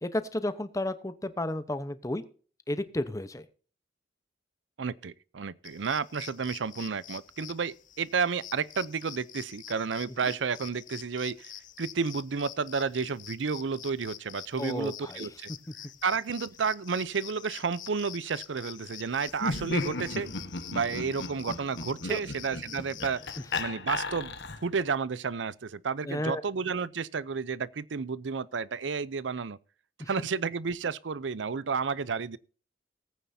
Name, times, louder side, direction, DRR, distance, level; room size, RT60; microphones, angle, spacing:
voice 1, 0.0-2.2 2.7-3.4 14.6-15.3 22.1-22.2 26.0-26.4 30.0-30.3, left 1 dB, 20° left, 0.9 m, -32 dB
voice 2, 4.8-11.5 11.8-15.5 16.0-20.3 20.7-23.2 23.6-24.3 24.6-29.6 30.1-32.4, right 5 dB, 85° right, 0.6 m, -31 dB
sound 1, 5.6-23.6, left 11 dB, 45° left, 0.7 m, -46 dB
Laughter, 19.3-24.8, left 2 dB, 65° left, 1.2 m, -35 dB
19.0 x 9.1 x 2.7 m
head